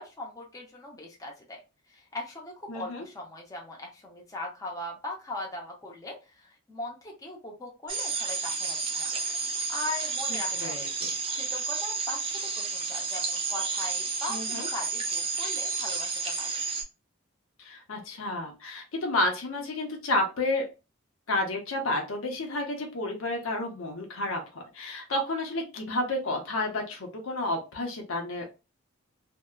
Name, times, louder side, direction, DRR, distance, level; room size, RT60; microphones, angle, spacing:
voice 1, 0.0-1.6 1.9-10.9 11.3-16.6, left 2 dB, 15° left, -2 dB, 0.6 m, -40 dB
voice 2, 2.7-3.0 10.6-11.1 14.3-14.7 17.6-20.6 21.3-28.4, left 2 dB, 85° left, 2 dB, 0.8 m, -31 dB
sound 1, 7.9-16.8, right 4 dB, 25° right, 0.5 m, -31 dB
2.6 x 2.1 x 2.3 m, 0.28 s
head